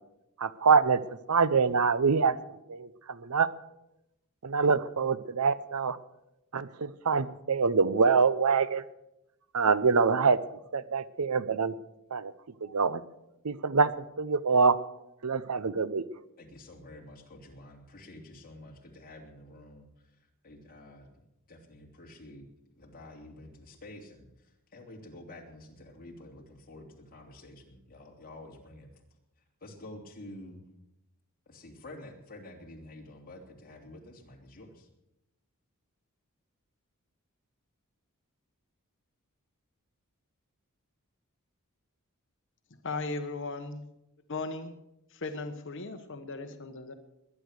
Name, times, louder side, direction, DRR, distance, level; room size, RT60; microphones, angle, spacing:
voice 1, 0.4-1.0 1.3-2.4 2.7-3.5 4.4-6.0 6.5-8.8 9.5-10.4 10.7-11.7 12.1-12.3 12.6-13.0 13.4-13.9 14.2-14.8 15.2-16.0, right 5 dB, 80° right, 16 dB, 0.8 m, -25 dB
voice 2, 16.4-19.9 20.4-21.1 21.5-22.5 22.8-24.3 24.7-28.9 29.6-30.6 31.5-34.9, left 1 dB, 40° left, 1 dB, 3.0 m, -49 dB
voice 3, 42.8-43.9 44.3-44.7 45.1-46.9, left 3 dB, 55° left, 8 dB, 1.2 m, -37 dB
20.5 x 10.0 x 6.5 m, 0.88 s
head